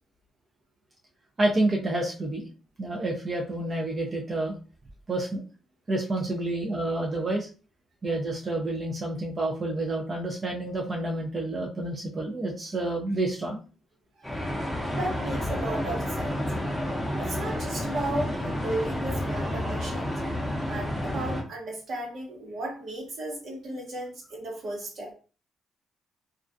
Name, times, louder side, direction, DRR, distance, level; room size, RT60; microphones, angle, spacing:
voice 1, 1.4-2.5 2.8-4.5 5.1-5.4 5.9-7.5 8.0-13.6, right 2 dB, 35° right, -1 dB, 0.5 m, -29 dB
sound 1, 14.2-21.4, left 1 dB, ahead, 0.7 m, -30 dB
voice 2, 14.9-16.4 17.2-20.1 20.7-25.1, right 1 dB, 65° right, -1 dB, 1.0 m, -34 dB
2.3 x 2.2 x 2.5 m, 0.36 s
cardioid pair, 90°, 0 cm